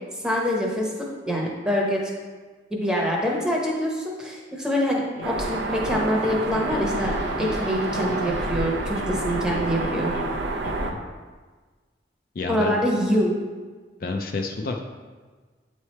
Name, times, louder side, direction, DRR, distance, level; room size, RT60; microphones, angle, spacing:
voice 1, 0.2-2.1 2.7-10.1 12.5-13.3, equal, 5° right, -2 dB, 0.9 m, -25 dB
sound 1, 4.9-10.7, left 1 dB, 80° left, 0.8 m, -37 dB
sound 2, 5.2-10.9, right 2 dB, 80° right, 0.6 m, -28 dB
voice 2, 12.4-12.8 14.0-14.9, left 3 dB, 50° left, 3 dB, 0.4 m, -29 dB
8.3 x 3.2 x 4.3 m, 1.4 s
head